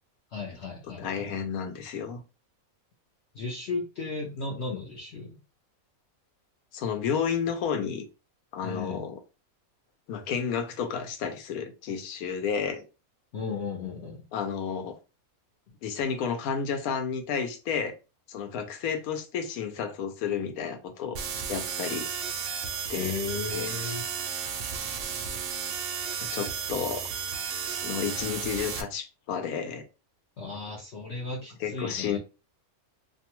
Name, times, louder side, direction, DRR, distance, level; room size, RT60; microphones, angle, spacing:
voice 1, 0.3-1.4 3.3-5.3 8.6-9.0 13.3-14.2 22.9-24.1 30.4-32.2, left 4 dB, 60° left, 0.8 m, -35 dB
voice 2, 1.0-2.2 6.7-8.1 8.5-9.2 10.1-12.8 14.3-15.0 15.8-17.9 18.3-21.2 21.5-22.1 22.9-23.1 23.5-23.7 26.3-27.0 27.8-29.8 31.6-32.2, left 7 dB, 85° left, 1.1 m, -31 dB
sound 1, 21.2-28.8, right 7 dB, 70° right, 0.8 m, -33 dB
2.6 x 2.2 x 2.9 m
omnidirectional pair, 1.5 m